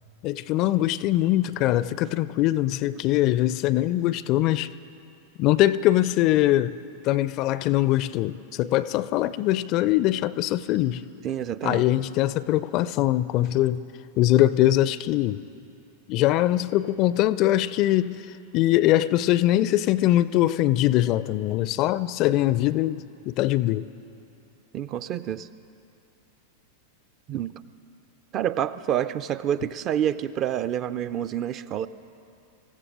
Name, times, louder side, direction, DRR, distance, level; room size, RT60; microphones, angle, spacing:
voice 1, 0.2-4.7 5.4-6.7 7.0-11.0 11.6-13.8 14.2-15.4 16.1-18.2 18.5-23.9, left 14 dB, 40° left, 0.4 m, -22 dB
voice 2, 11.2-11.8 24.7-25.5 27.3-27.5 28.3-31.9, right 10 dB, 35° right, 0.4 m, -28 dB
26.0 x 15.0 x 3.6 m
figure-of-eight pair, 90°, 0 cm